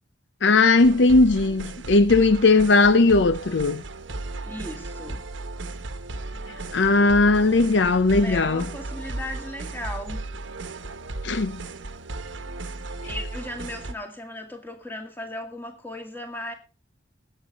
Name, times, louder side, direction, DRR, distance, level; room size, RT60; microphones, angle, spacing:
voice 1, 0.4-3.8 6.7-8.7 11.2-11.6, left 3 dB, 70° left, 0.7 m, -18 dB
sound 1, 0.8-13.9, right 2 dB, 90° right, 1.2 m, -35 dB
voice 2, 4.5-5.3 8.1-10.2 13.0-16.5, left 1 dB, 10° left, 2.1 m, -36 dB
19.5 x 8.0 x 4.1 m
head